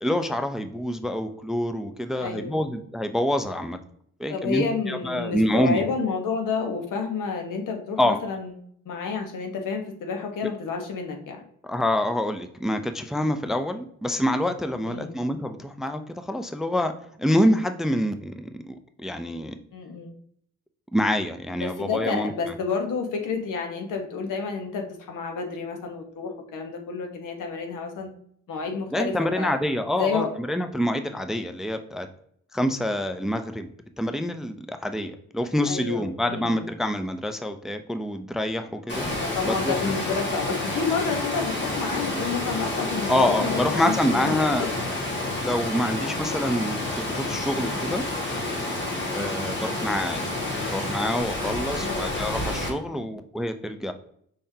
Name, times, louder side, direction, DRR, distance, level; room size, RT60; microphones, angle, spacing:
voice 1, 0.0-3.8 4.2-5.9 8.0-8.2 11.6-16.9 17.2-19.6 20.9-22.3 28.9-32.1 32.5-33.7 34.0-39.1 39.4-39.9 43.1-44.7 45.4-48.0 49.1-50.2 50.7-53.9, left 1 dB, ahead, 8 dB, 0.4 m, -26 dB
voice 2, 2.1-2.6 4.3-8.5 8.9-11.4 14.8-15.1 19.7-20.1 21.6-28.1 28.5-29.5 30.0-30.3 35.7-36.7 39.2-44.7 49.4-49.6 51.7-52.2, left 5 dB, 80° left, 4 dB, 1.1 m, -30 dB
Water, 38.9-52.7, left 2 dB, 35° left, 1.6 m, -29 dB
5.5 x 3.6 x 2.7 m, 0.66 s
cardioid pair, 75°, 31 cm